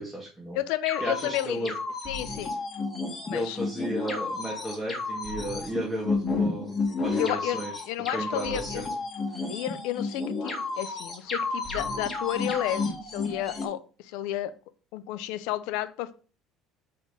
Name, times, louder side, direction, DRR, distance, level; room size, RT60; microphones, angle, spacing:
voice 1, 0.0-0.6 1.0-1.7 3.3-7.7 8.1-8.9 9.3-9.5, equal, 5° right, -5 dB, 2.0 m, -33 dB
voice 2, 0.5-1.7 2.1-2.6 3.3-3.6 7.2-7.6 7.9-8.9 9.5-14.5 14.9-16.1, left 14 dB, 85° left, 12 dB, 0.7 m, -32 dB
sound 1, 0.9-13.6, left 3 dB, 20° left, 2.0 m, -32 dB
6.3 x 4.4 x 5.1 m, 0.37 s
cardioid pair, 140°, 0 cm